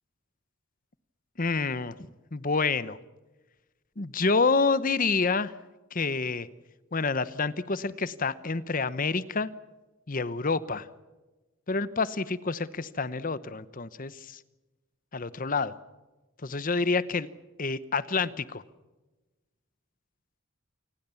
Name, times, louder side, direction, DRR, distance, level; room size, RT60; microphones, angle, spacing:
voice 1, 1.4-2.0 2.3-3.0 4.0-5.5 5.9-6.5 6.9-9.5 10.1-10.9 11.7-14.4 15.1-15.7 16.4-17.3 17.6-18.6, left 4 dB, 40° left, 16 dB, 0.9 m, -28 dB
28.5 x 20.0 x 7.1 m, 1.1 s
head